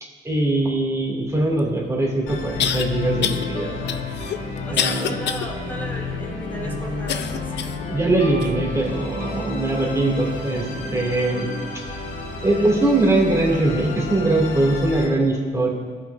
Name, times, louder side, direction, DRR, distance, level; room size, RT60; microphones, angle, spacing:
voice 1, 0.2-3.8 4.7-5.1 7.9-11.5 11.7-11.8 12.4-15.7, right 2 dB, 15° right, -2 dB, 2.6 m, -21 dB
sound 1, 1.6-1.7 2.6-2.8 3.2-3.5 3.9-5.5 5.9-6.0 7.1-7.8 8.4-8.5 9.3-9.4, left 9 dB, 60° left, 0.6 m, -26 dB
Musical instrument, 2.3-15.1, left 2 dB, 80° left, 2.4 m, -33 dB
sound 2, 2.5-12.4, left 5 dB, 35° left, 1.9 m, -34 dB
voice 2, 4.6-7.5, equal, 10° left, -2 dB, 2.3 m, -35 dB
17.0 x 5.9 x 2.7 m, 1.5 s
cardioid pair, 90°, 20 cm